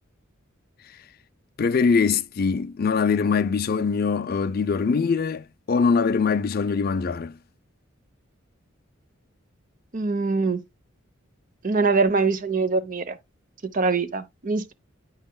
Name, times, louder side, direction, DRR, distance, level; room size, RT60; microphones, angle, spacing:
voice 1, 1.6-7.4, left 5 dB, 45° left, 0.4 m, -23 dB
voice 2, 9.9-10.6 11.6-13.2 13.7-14.7, right 4 dB, 40° right, 0.7 m, -23 dB
8.8 x 5.7 x 2.2 m
head